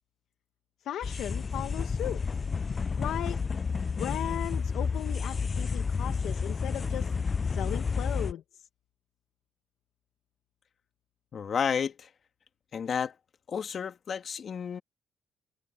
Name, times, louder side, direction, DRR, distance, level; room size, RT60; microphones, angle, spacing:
voice 1, 0.8-2.2 3.0-3.4 4.0-7.1 7.4-8.7, left 11 dB, 80° left, 1.2 m, -36 dB
sound 1, 1.0-8.3, left 5 dB, 35° left, 0.5 m, -31 dB
voice 2, 11.3-12.1 12.7-13.1 13.5-14.8, left 7 dB, 50° left, 2.1 m, -31 dB
cardioid pair, 90°, 0 cm